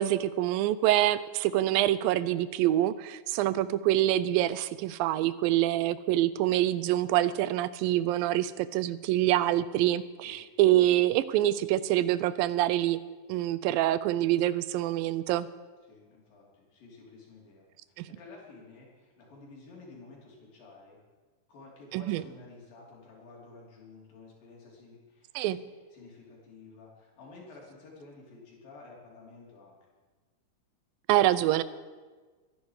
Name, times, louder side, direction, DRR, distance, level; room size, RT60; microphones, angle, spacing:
voice 1, 0.0-13.0 13.3-15.5 18.0-18.1 21.9-22.2 25.4-25.6 31.1-31.6, right 14 dB, 85° right, 16 dB, 2.4 m, -26 dB
voice 2, 15.9-17.7 18.1-21.0 21.5-25.6 25.9-29.8, left 3 dB, 75° left, -2 dB, 4.9 m, -51 dB
23.0 x 10.5 x 4.8 m, 1.4 s
omnidirectional pair, 4.0 m